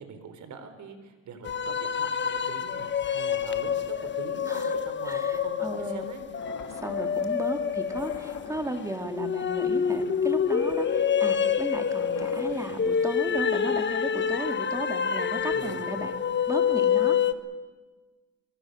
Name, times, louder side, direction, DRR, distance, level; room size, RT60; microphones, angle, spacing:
voice 1, 0.0-6.2 12.7-12.8 15.5-15.8, right 5 dB, 70° right, 8 dB, 3.9 m, -43 dB
sound 1, 1.4-17.3, left 7 dB, 40° left, 1.3 m, -27 dB
voice 2, 5.1-6.1 6.8-17.2, right 1 dB, 10° right, 5 dB, 2.8 m, -35 dB
sound 2, 6.4-7.4 7.8-13.0, left 7 dB, 75° left, 2.4 m, -46 dB
25.0 x 22.5 x 6.7 m, 1.3 s
cardioid pair, 90°, 30 cm